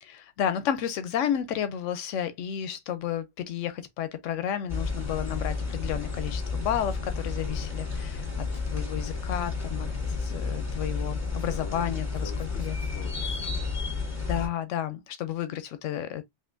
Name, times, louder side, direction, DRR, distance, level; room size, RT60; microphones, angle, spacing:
voice 1, 0.0-8.3 8.7-9.9 10.2-12.3 12.6-12.7 14.3-16.2, left 9 dB, 90° left, 0.9 m, -31 dB
sound 1, 4.7-14.5, left 4 dB, 10° left, 2.2 m, -31 dB
voice 2, 7.3-7.7 11.5-13.8, left 6 dB, 60° left, 1.1 m, -47 dB
5.6 x 2.7 x 2.5 m
omnidirectional pair, 1.3 m